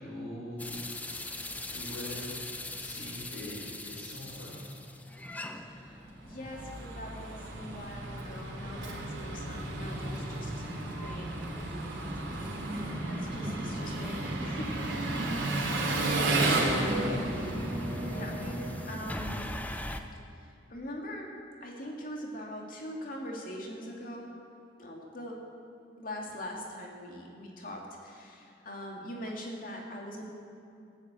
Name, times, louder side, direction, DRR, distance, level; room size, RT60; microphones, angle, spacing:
voice 1, 0.0-1.3 1.7-4.6, left 1 dB, 85° left, -5 dB, 4.8 m, -42 dB
sound 1, 0.6-20.0, left 1 dB, 10° left, 0.6 m, -42 dB
voice 2, 5.5-10.7 10.9-11.4 12.9-15.6 18.1-19.7 20.4-24.3 24.8-25.4 26.0-30.2, equal, 45° left, -1 dB, 2.4 m, -42 dB
Engine, 6.0-19.6, right 2 dB, 75° right, 3.2 m, -33 dB
14.0 x 10.5 x 8.2 m, 2.5 s
head